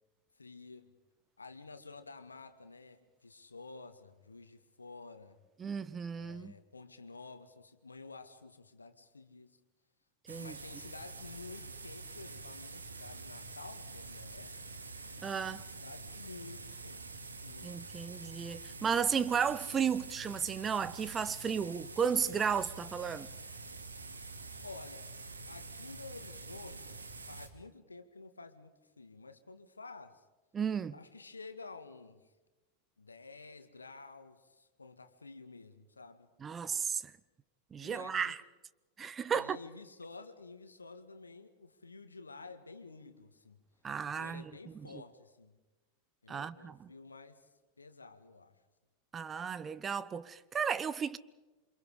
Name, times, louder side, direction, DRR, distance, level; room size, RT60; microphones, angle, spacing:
voice 1, 0.4-0.9 1.4-5.4 6.1-9.6 10.4-14.6 15.5-18.1 24.6-25.1 25.5-30.2 30.9-32.3 33.0-36.3 37.8-38.3 39.3-43.6 44.0-45.6 46.2-47.5 47.8-48.6, left 3 dB, 80° left, 1.9 m, -51 dB
voice 2, 5.6-6.5 10.3-10.6 15.2-15.6 17.6-23.3 30.5-30.9 36.4-37.1 37.7-38.4 39.0-39.6 43.8-44.5 46.3-46.9 49.1-51.2, right 7 dB, 20° right, 0.9 m, -34 dB
sound 1, 10.3-27.5, right 3 dB, 75° right, 2.5 m, -47 dB
28.5 x 26.0 x 5.0 m
figure-of-eight pair, 90°, 0 cm